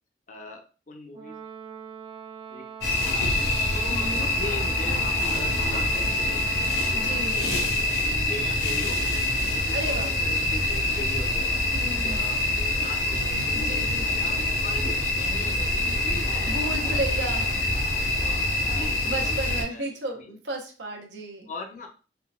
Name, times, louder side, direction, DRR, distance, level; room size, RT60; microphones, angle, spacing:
voice 1, 0.3-1.4 2.5-2.6 3.0-7.5 8.3-9.2 9.9-11.6 12.0-13.5 14.1-17.3 18.8-19.4 19.7-19.9 20.3-20.4 21.5-21.9, left 2 dB, 45° left, 4 dB, 0.5 m, -40 dB
Brass instrument, 1.1-7.5, right 7 dB, 30° right, 0.4 m, -42 dB
sound 1, 2.8-19.6, left 2 dB, 65° left, 0.9 m, -25 dB
voice 2, 3.9-4.3 6.9-7.6 9.7-10.2 11.7-12.4 13.5-14.5 16.5-17.5 19.0-21.5, right 1 dB, 90° right, 2 dB, 0.8 m, -34 dB
3.8 x 2.2 x 2.2 m, 0.36 s
head